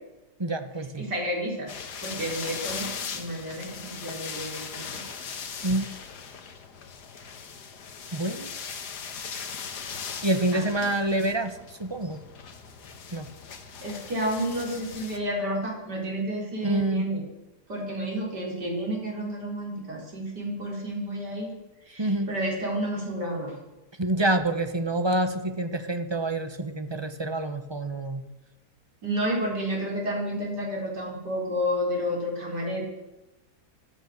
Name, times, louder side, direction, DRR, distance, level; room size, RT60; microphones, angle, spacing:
voice 1, 0.4-1.0 5.6-5.9 8.1-8.5 10.2-12.2 13.1-13.3 16.6-17.1 22.0-22.3 24.0-28.2, right 2 dB, 20° right, 8 dB, 0.8 m, -27 dB
voice 2, 1.0-1.7 2.0-5.1 10.5-10.9 13.8-17.2 17.7-21.5 21.9-23.6 29.0-32.8, equal, 80° right, -2 dB, 4.8 m, -31 dB
sound 1, 1.7-15.2, left 6 dB, 75° left, 1.9 m, -39 dB
16.0 x 12.5 x 6.5 m, 1.0 s
omnidirectional pair, 1.8 m